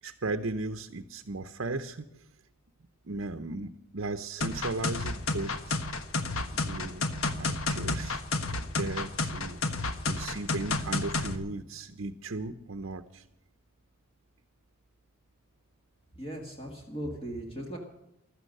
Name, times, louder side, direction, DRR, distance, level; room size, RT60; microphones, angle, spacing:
voice 1, 0.0-2.3 3.0-5.8 6.5-7.1 7.4-8.2 8.6-9.6 10.1-13.3, right 2 dB, 60° right, 7 dB, 0.8 m, -36 dB
sound 1, 4.4-11.4, left 3 dB, 75° left, 1.3 m, -31 dB
voice 2, 16.2-17.8, equal, 25° left, 1 dB, 2.1 m, -38 dB
15.5 x 12.5 x 6.6 m, 0.85 s
head